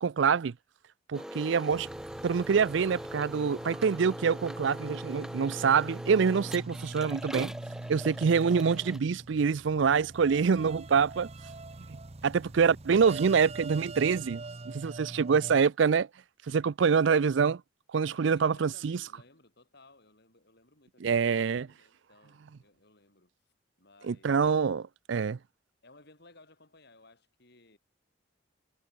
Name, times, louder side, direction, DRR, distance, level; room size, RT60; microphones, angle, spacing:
voice 1, 0.0-0.5 1.1-1.9 2.2-7.5 7.9-11.3 11.9-12.0 12.2-16.1 16.5-17.6 17.9-19.0 21.0-21.7 24.0-25.4, right 6 dB, 65° right, 0.4 m, -26 dB
sound 1, 1.1-9.0, equal, 5° right, 1.7 m, -42 dB
sound 2, 1.7-15.6, right 2 dB, 30° right, 0.8 m, -43 dB
voice 2, 18.0-23.3 23.8-24.3 25.8-27.8, left 2 dB, 55° left, 7.1 m, -59 dB
head